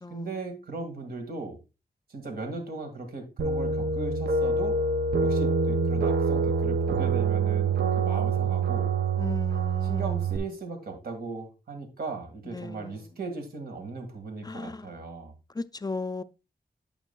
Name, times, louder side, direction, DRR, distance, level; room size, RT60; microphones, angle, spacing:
voice 1, 0.1-1.6 2.1-4.7 5.2-8.9 9.8-15.3, right 3 dB, 70° right, 1.9 m, -37 dB
sound 1, 3.4-10.4, right 4 dB, 85° right, 0.6 m, -26 dB
voice 2, 9.2-10.2 12.5-13.0 14.4-14.9 15.6-16.2, left 3 dB, 25° left, 0.4 m, -35 dB
9.0 x 7.2 x 2.3 m
cardioid pair, 65°, 17 cm